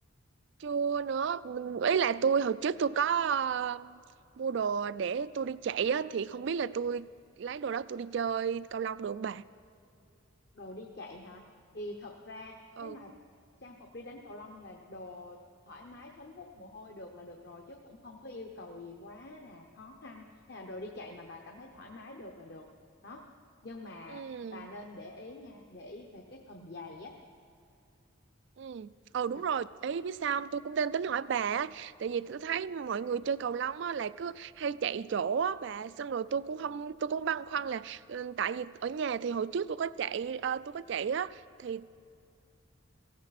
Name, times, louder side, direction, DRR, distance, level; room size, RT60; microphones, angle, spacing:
voice 1, 0.6-4.0 4.4-7.1 7.4-9.4 12.8-13.0 24.1-24.7 28.6-41.9, right 7 dB, 60° right, 18 dB, 0.3 m, -32 dB
voice 2, 10.5-11.4 11.7-13.1 13.6-15.4 15.7-22.7 23.0-23.3 23.6-27.2 29.3-29.4, left 2 dB, 55° left, 2 dB, 0.9 m, -46 dB
17.0 x 16.0 x 4.2 m, 2.6 s
head